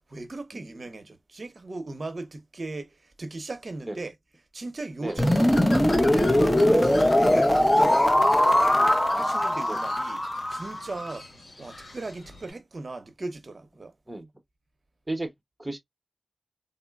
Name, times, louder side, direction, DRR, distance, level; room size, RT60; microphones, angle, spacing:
voice 1, 0.0-4.1 4.5-11.3 11.6-13.9, right 2 dB, 60° right, 0.7 m, -38 dB
voice 2, 0.5-0.9 3.8-4.0 5.0-5.3 9.1-9.3 9.7-9.8 14.1-14.3 15.1-15.3 15.6-15.8, right 2 dB, 20° right, 0.8 m, -35 dB
Bird, 5.1-12.5, left 2 dB, 75° left, 1.2 m, -41 dB
sound 1, 5.2-11.1, left 1 dB, 15° left, 0.6 m, -21 dB
3.8 x 2.1 x 2.2 m
cardioid pair, 50°, 0 cm